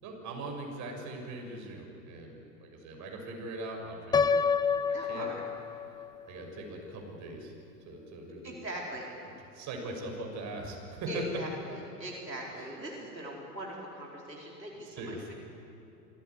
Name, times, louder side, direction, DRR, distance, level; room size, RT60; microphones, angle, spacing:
voice 1, 0.0-5.3 6.2-7.5 7.8-8.5 9.5-11.2 14.9-15.3, right 2 dB, 35° right, 1 dB, 6.5 m, -41 dB
Piano, 4.1-6.1, left 5 dB, 10° left, 0.6 m, -28 dB
voice 2, 4.9-5.4 8.4-9.1 11.1-15.3, right 1 dB, 90° right, -2 dB, 4.4 m, -41 dB
27.5 x 16.0 x 9.8 m, 2.8 s
figure-of-eight pair, 90°, 49 cm